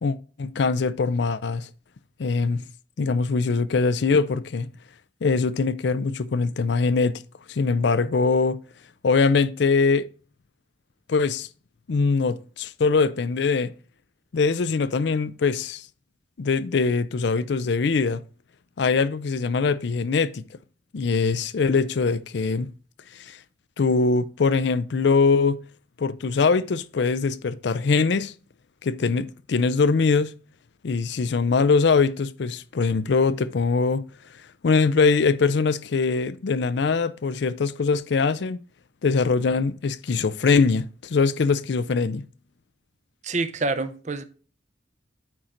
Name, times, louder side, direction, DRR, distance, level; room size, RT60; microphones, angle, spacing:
voice 1, 0.0-1.7 2.2-2.7 3.0-4.7 5.2-7.2 7.5-8.6 9.0-10.0 11.1-11.5 11.9-13.7 14.3-15.9 16.4-18.2 18.8-20.4 20.9-22.7 23.1-23.4 23.8-25.6 26.0-28.3 28.8-30.3 30.8-34.0 34.6-38.6 39.0-42.2, left 4 dB, 65° left, 0.4 m, -22 dB
voice 2, 43.2-44.2, right 3 dB, 40° right, 0.6 m, -27 dB
9.2 x 4.4 x 3.8 m
head